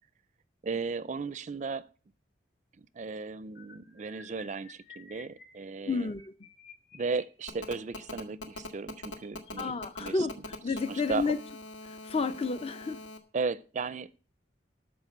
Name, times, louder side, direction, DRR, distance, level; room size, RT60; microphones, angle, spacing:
voice 1, 0.6-1.8 2.8-6.1 6.9-10.3 10.9-11.3 13.3-14.1, right 4 dB, 40° right, 0.4 m, -35 dB
sound 1, 3.5-10.7 11.5-11.7 12.0-12.2 12.5-12.7, left 4 dB, 60° left, 2.9 m, -56 dB
voice 2, 5.9-6.3 9.6-11.4 11.8-13.0, left 4 dB, 30° left, 0.5 m, -31 dB
Telephone, 7.5-13.2, left 2 dB, 80° left, 1.8 m, -42 dB
13.0 x 5.1 x 7.9 m
head